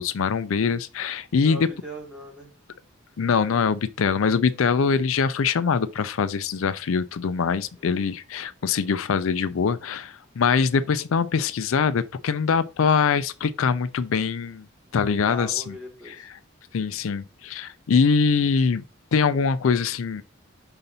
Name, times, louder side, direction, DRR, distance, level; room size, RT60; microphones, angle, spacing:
voice 1, 0.0-1.7 3.2-14.7 14.9-15.7 16.1-16.2 16.7-18.8 19.1-20.2, left 5 dB, 80° left, 0.4 m, -23 dB
voice 2, 1.4-2.5 7.7-8.1 15.2-16.3, equal, 5° right, 2.9 m, -39 dB
5.7 x 3.9 x 5.4 m
head